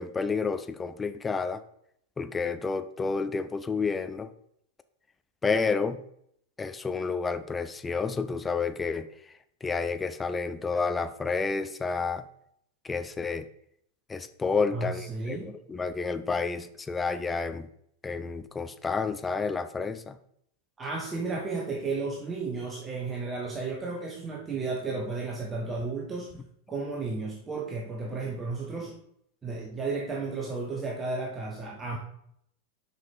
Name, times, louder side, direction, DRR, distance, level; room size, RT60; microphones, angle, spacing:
voice 1, 0.0-1.6 2.2-4.3 5.4-6.0 6.6-9.1 9.6-12.2 12.8-13.5 14.1-17.7 18.0-20.2, left 4 dB, 15° left, 11 dB, 0.5 m, -30 dB
voice 2, 14.7-15.5 20.8-26.3 26.7-29.0 29.4-32.0, right 3 dB, 20° right, -1 dB, 1.1 m, -33 dB
6.3 x 5.2 x 4.3 m, 0.71 s
figure-of-eight pair, 90°, 0 cm